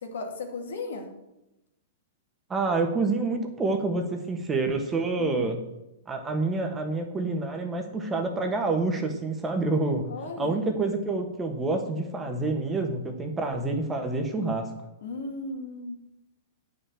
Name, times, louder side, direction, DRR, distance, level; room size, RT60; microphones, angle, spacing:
voice 1, 0.0-1.1 5.2-5.5 10.1-10.5 15.0-16.0, left 3 dB, 85° left, 2 dB, 2.5 m, -36 dB
voice 2, 2.5-5.6 6.1-10.1 10.4-14.7, right 3 dB, 15° right, 4 dB, 1.4 m, -27 dB
9.5 x 5.7 x 7.6 m, 0.91 s
hypercardioid pair, 150°, 0 cm